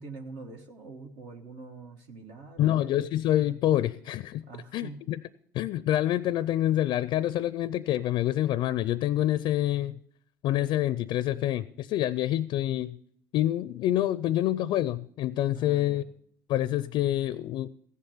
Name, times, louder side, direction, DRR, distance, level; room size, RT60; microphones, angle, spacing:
voice 1, 0.0-3.0 4.5-5.0 15.5-16.1, right 4 dB, 70° right, 2 dB, 1.4 m, -44 dB
voice 2, 2.6-4.4 4.7-5.2 5.5-10.0 10.4-13.0 13.3-16.0 16.5-17.7, left 13 dB, 65° left, 18 dB, 0.4 m, -27 dB
15.0 x 7.3 x 5.6 m, 0.65 s
hypercardioid pair, 70°, 9 cm